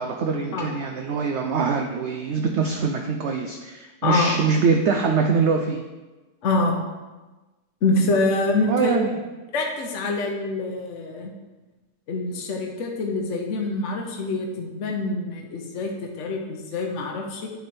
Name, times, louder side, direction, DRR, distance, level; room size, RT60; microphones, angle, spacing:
voice 1, 0.0-5.9 8.7-9.2, right 5 dB, 70° right, 3 dB, 0.6 m, -23 dB
voice 2, 6.4-6.8 7.8-9.0 9.5-11.3 12.1-17.5, left 2 dB, 55° left, 1 dB, 1.0 m, -25 dB
9.2 x 3.4 x 4.3 m, 1.2 s
omnidirectional pair, 1.7 m